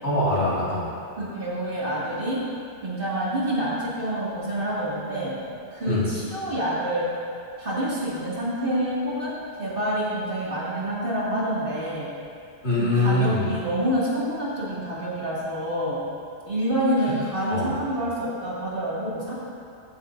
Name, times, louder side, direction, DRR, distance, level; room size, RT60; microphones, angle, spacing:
voice 1, 0.0-0.9 5.9-6.1 12.6-13.5 17.5-17.7, left 2 dB, 70° left, -7 dB, 2.4 m, -23 dB
voice 2, 1.2-2.4 2.8-5.4 5.7-7.1 7.6-12.1 12.7-16.0 16.5-19.3, right 1 dB, 55° right, -8 dB, 2.6 m, -27 dB
15.5 x 8.6 x 2.7 m, 2.4 s
omnidirectional pair, 1.1 m